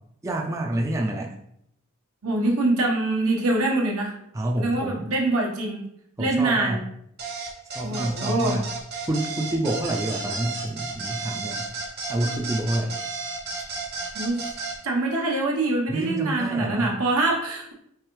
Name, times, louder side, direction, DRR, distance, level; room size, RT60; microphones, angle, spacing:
voice 1, 0.2-1.3 4.3-5.1 6.2-6.8 7.8-8.7 9.0-11.6 12.1-13.0 15.9-16.9, right 1 dB, 15° right, 0 dB, 0.3 m, -28 dB
voice 2, 2.2-4.1 4.6-5.8 6.2-6.8 7.8-8.6 14.1-14.5 14.8-17.7, right 2 dB, 80° right, 0 dB, 1.0 m, -24 dB
sound 1, 7.2-14.8, right 4 dB, 45° right, 0.9 m, -33 dB
4.7 x 3.4 x 3.1 m, 0.74 s
head